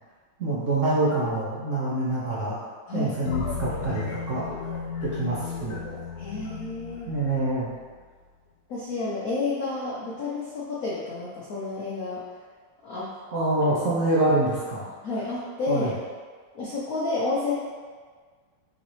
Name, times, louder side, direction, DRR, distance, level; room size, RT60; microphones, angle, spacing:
voice 1, 0.4-2.6 2.9-4.7 5.0-6.0 7.1-7.7 13.3-14.9 15.7-15.9, right 2 dB, 70° right, -7 dB, 0.7 m, -26 dB
sound 1, 3.3-7.9, left 6 dB, 90° left, 1.5 m, -34 dB
voice 2, 6.2-7.1 8.7-12.2 12.8-13.1 15.0-15.9 16.5-17.5, left 3 dB, 70° left, -6 dB, 0.8 m, -30 dB
4.1 x 3.8 x 3.1 m, 1.5 s
omnidirectional pair, 2.3 m